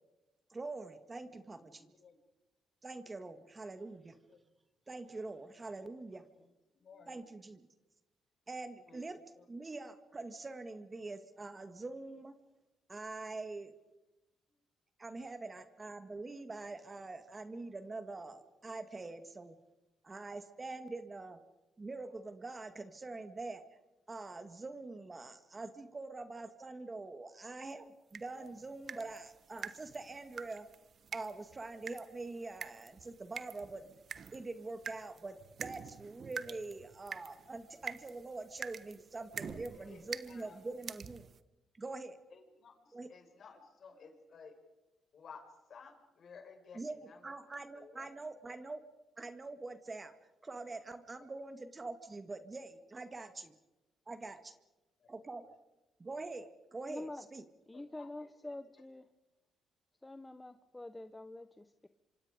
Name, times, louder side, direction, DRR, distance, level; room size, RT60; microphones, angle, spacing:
voice 1, 0.5-1.9 2.8-4.2 4.9-6.3 7.1-7.7 8.5-9.2 9.5-12.4 12.9-13.8 15.0-19.6 20.0-21.4 21.8-23.8 24.1-30.7 31.1-33.9 34.3-41.3 41.7-42.2 42.9-43.1 46.7-48.8 49.2-50.1 50.4-53.6 54.1-54.5 55.1-55.5 56.0-57.4, right 3 dB, 25° right, 10 dB, 1.9 m, -44 dB
voice 2, 1.7-2.2 4.3-4.4 6.7-7.1 8.9-9.4 28.3-28.5 28.9-29.1 36.5-36.6 39.4-40.6 42.3-44.5 45.1-47.2 47.5-48.1 55.0-55.1 57.7-58.5, left 5 dB, 55° left, 5 dB, 5.2 m, -56 dB
sound 1, 28.1-41.4, right 6 dB, 50° right, 1.1 m, -47 dB
voice 3, 56.9-57.2 57.7-59.0 60.0-61.9, left 2 dB, 15° left, 10 dB, 1.0 m, -46 dB
26.5 x 25.5 x 5.1 m, 1.0 s
cardioid pair, 90°, 0 cm